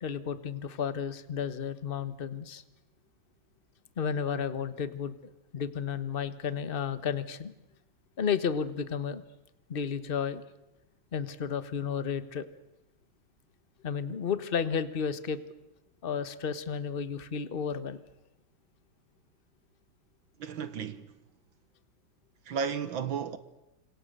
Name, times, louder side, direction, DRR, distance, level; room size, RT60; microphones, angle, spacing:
voice 1, 0.0-2.6 4.0-5.1 5.5-7.5 8.2-9.2 9.7-10.4 11.1-12.4 13.8-15.4 16.0-18.0, left 7 dB, 30° left, 1.2 m, -32 dB
voice 2, 20.4-21.1 22.5-23.4, right 6 dB, 70° right, 1.9 m, -33 dB
29.5 x 26.5 x 6.8 m
omnidirectional pair, 2.3 m